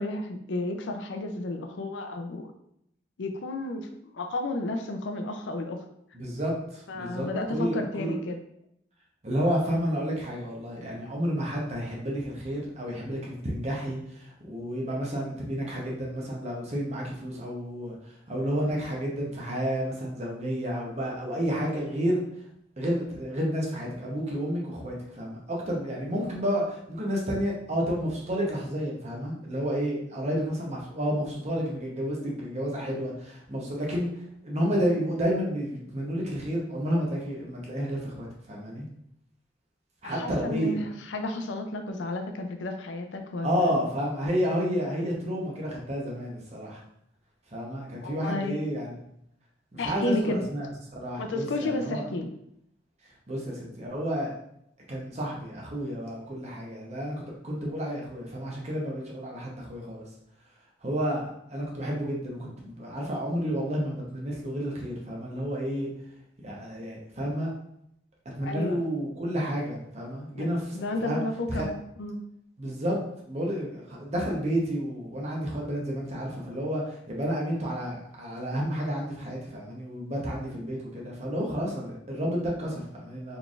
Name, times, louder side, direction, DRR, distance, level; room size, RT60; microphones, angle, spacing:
voice 1, 0.0-2.5 3.2-3.9 4.1-5.8 6.9-8.4 40.0-43.7 48.0-48.6 49.8-50.4 51.2-52.3 68.4-68.8 70.4-70.5 70.7-72.2, left 2 dB, 80° left, 6 dB, 0.5 m, -32 dB
voice 2, 6.1-8.1 9.2-17.9 18.3-22.2 22.8-34.1 34.4-38.9 40.0-40.8 43.4-46.8 47.5-48.9 49.7-50.7 51.0-52.0 53.3-54.3 54.9-60.1 60.8-65.9 66.4-67.5 68.4-71.7 72.6-73.0 73.3-83.4, equal, 35° right, -2 dB, 0.9 m, -30 dB
4.0 x 3.3 x 2.4 m, 0.74 s
head